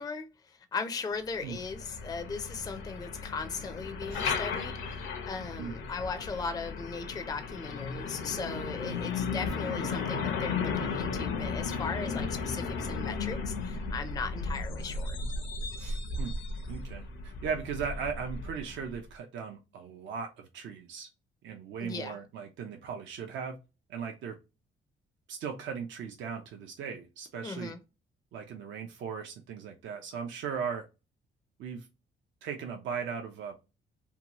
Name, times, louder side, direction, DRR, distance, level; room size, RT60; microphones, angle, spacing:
voice 1, 0.0-15.2 21.8-22.2 27.4-27.8, left 4 dB, 20° left, 0.4 m, -38 dB
Truck, 1.3-19.0, left 4 dB, 85° left, 0.7 m, -35 dB
voice 2, 15.8-16.4 16.7-21.1 21.4-23.6 23.9-24.4 25.3-27.7 28.3-30.9 31.6-31.9 32.4-33.5, right 6 dB, 70° right, 0.5 m, -38 dB
2.8 x 2.2 x 2.8 m
cardioid pair, 90°, 20 cm